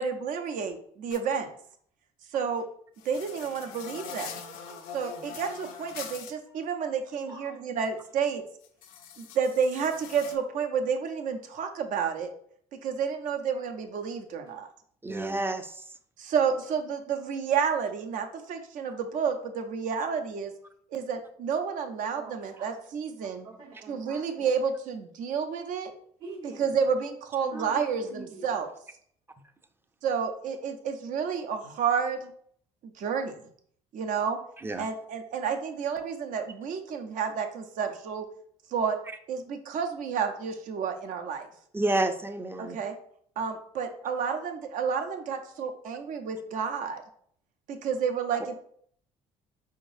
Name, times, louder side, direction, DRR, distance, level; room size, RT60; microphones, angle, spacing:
voice 1, 0.0-1.5 2.3-2.6 3.0-4.3 4.9-8.4 9.2-12.3 12.8-14.7 16.2-20.5 20.9-23.5 23.9-25.9 26.6-28.7 30.0-32.3 32.8-33.3 33.9-34.4 34.8-38.3 38.7-39.0 39.3-41.5 42.6-42.9 43.4-47.0 47.7-48.5, right 6 dB, 65° right, 6 dB, 0.7 m, -30 dB
sound 1, 1.1-1.2 3.0-6.3 8.6-10.3, left 7 dB, 75° left, 0.6 m, -42 dB
voice 2, 4.3-4.8 6.4-6.6 7.2-7.9 12.9-13.0 14.4-14.5 15.1-15.4 18.9-19.0 22.1-22.7 23.4-24.5 26.2-26.7 27.4-28.5, right 2 dB, 80° right, -6 dB, 1.7 m, -46 dB
voice 3, 15.0-15.8 34.6-34.9 41.7-42.8, right 2 dB, 15° right, 8 dB, 0.5 m, -29 dB
4.7 x 3.8 x 2.6 m, 0.62 s
supercardioid pair, 75°, 15 cm